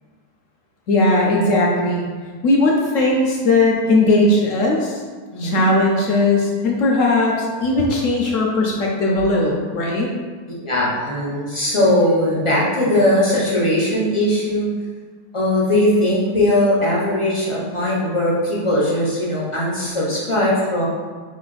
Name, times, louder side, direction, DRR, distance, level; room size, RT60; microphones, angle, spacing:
voice 1, 0.9-2.1 2.4-5.0 5.4-10.1, left 2 dB, 65° left, -1 dB, 0.8 m, -18 dB
voice 2, 5.3-5.6 10.6-14.7 15.3-20.8, left 1 dB, 35° left, -6 dB, 0.5 m, -19 dB
3.7 x 3.2 x 3.9 m, 1.5 s
omnidirectional pair, 1.7 m